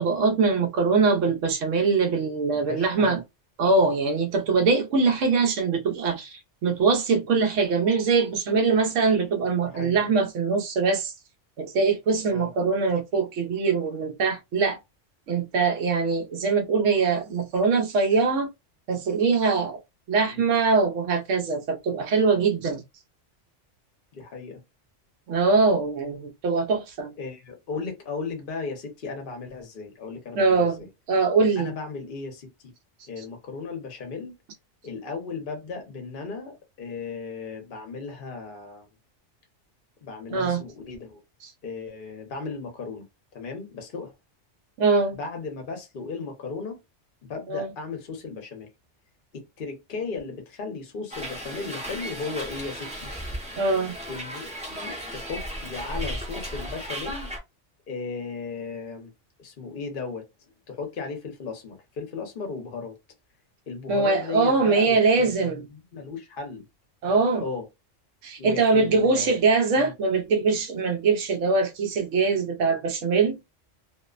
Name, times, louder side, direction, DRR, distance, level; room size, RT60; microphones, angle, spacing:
voice 1, 0.0-3.2 3.6-11.1 11.6-14.8 15.3-18.5 18.9-19.8 20.1-22.8 25.3-27.1 30.4-31.7 40.3-40.6 44.8-45.2 47.5-47.7 53.6-54.0 63.9-65.7 67.0-67.4 68.2-73.4, right 4 dB, 85° right, 1.0 m, -22 dB
voice 2, 2.5-3.2 9.6-10.1 12.2-12.5 20.3-20.5 24.1-24.6 27.2-30.9 31.6-32.7 33.1-34.3 34.8-38.9 40.0-41.2 41.6-43.1 43.3-44.1 45.1-46.8 47.3-48.7 49.3-53.1 54.1-57.3 57.9-59.1 59.4-60.3 60.7-63.0 63.7-66.6 67.4-67.7 68.4-69.4 69.7-69.9, left 4 dB, 50° left, 0.9 m, -36 dB
Hiss, 51.1-57.4, equal, 5° right, 0.6 m, -35 dB
2.7 x 2.0 x 2.4 m
omnidirectional pair, 1.2 m